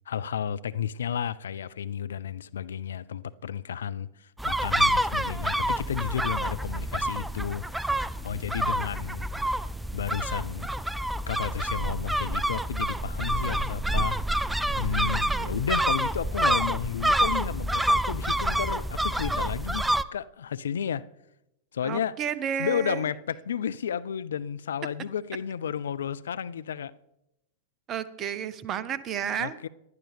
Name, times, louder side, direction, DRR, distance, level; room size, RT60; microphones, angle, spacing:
voice 1, 0.1-8.0 8.2-9.2 9.9-10.7 11.3-14.2 14.8-21.1 21.7-22.2 22.6-26.9 29.4-29.7, left 8 dB, 70° left, 0.4 m, -32 dB
sound 1, 4.4-20.0, right 1 dB, 5° right, 0.4 m, -27 dB
voice 2, 15.3-15.6 21.8-23.1 27.9-29.6, right 8 dB, 30° right, 0.8 m, -32 dB
19.0 x 11.5 x 3.4 m
figure-of-eight pair, 95°, 0 cm